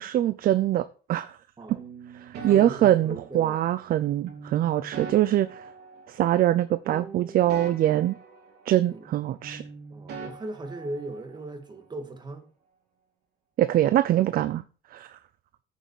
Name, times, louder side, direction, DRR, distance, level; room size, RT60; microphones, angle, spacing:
voice 1, 0.0-1.3 2.4-5.6 6.1-8.2 8.7-9.6 13.6-14.6 14.9-15.2, right 13 dB, 60° right, 0.6 m, -23 dB
sound 1, 1.7-3.7 4.3-6.6 6.8-9.2 9.4-11.5, right 5 dB, 75° right, 3.5 m, -43 dB
voice 2, 2.5-3.6 8.9-9.2 9.9-12.5, right 2 dB, 25° right, 2.0 m, -37 dB
9.2 x 6.5 x 6.5 m
cardioid pair, 110°, 17 cm